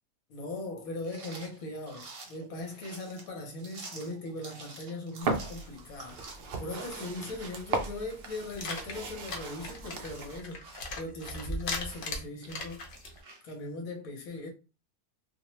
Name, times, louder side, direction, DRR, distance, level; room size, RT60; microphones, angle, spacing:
voice 1, 0.3-6.2 6.6-12.9 13.4-14.5, left 2 dB, 75° left, 1.3 m, -39 dB
sound 1, 1.0-13.6, right 3 dB, 50° right, 0.9 m, -50 dB
sound 2, 5.2-10.4, right 3 dB, 70° right, 0.5 m, -37 dB
sound 3, 8.5-13.2, left 2 dB, 55° left, 0.6 m, -38 dB
2.7 x 2.1 x 3.0 m
omnidirectional pair, 1.5 m